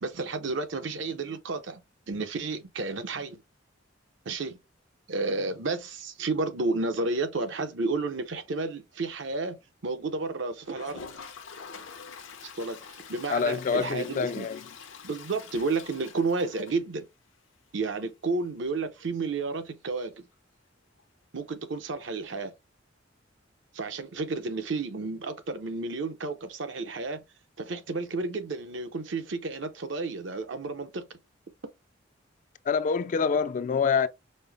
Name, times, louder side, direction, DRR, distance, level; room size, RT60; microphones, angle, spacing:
voice 1, 0.0-1.8 2.1-3.4 4.3-4.6 5.1-9.6 9.8-11.0 12.6-14.5 15.0-17.0 17.7-20.3 21.3-22.5 23.7-27.2 27.6-31.1, right 3 dB, 65° right, 0.7 m, -31 dB
Toilet flush, 10.6-17.4 17.7-17.8 18.0-18.1 18.3-18.4 21.0-21.1 22.4-22.5, left 5 dB, 85° left, 0.8 m, -46 dB
voice 2, 13.3-14.7 32.7-34.1, left 5 dB, 40° left, 0.3 m, -26 dB
5.3 x 2.0 x 3.3 m
head